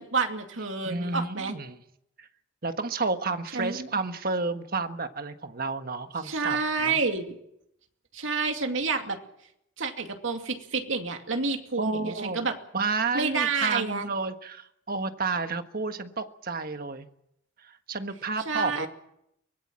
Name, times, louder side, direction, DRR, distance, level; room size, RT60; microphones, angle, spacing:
voice 1, 0.0-1.5 3.5-3.9 6.2-7.3 8.1-9.2 9.8-12.5 13.1-14.1 18.5-18.9, right 4 dB, 85° right, 4 dB, 2.5 m, -29 dB
voice 2, 0.8-1.8 2.2-2.3 2.6-7.0 11.8-12.5 12.7-17.1 17.6-18.9, right 3 dB, 50° right, 8 dB, 1.5 m, -31 dB
23.5 x 19.5 x 7.6 m, 0.78 s
head